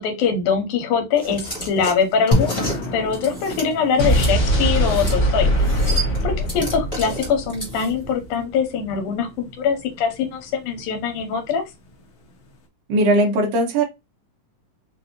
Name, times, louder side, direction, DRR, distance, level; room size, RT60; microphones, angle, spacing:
voice 1, 0.0-5.5 5.9-11.6, left 6 dB, 85° left, 2.4 m, -23 dB
sound 1, 1.2-4.3 4.7-5.2 5.4-8.1, right 2 dB, 20° left, 1.1 m, -31 dB
sound 2, 2.3-12.6, left 2 dB, 65° left, 1.3 m, -32 dB
Explosion, 4.0-8.1, equal, 45° left, 1.1 m, -21 dB
voice 2, 12.9-13.8, right 1 dB, 65° right, 2.0 m, -18 dB
5.3 x 2.7 x 2.6 m
omnidirectional pair, 3.6 m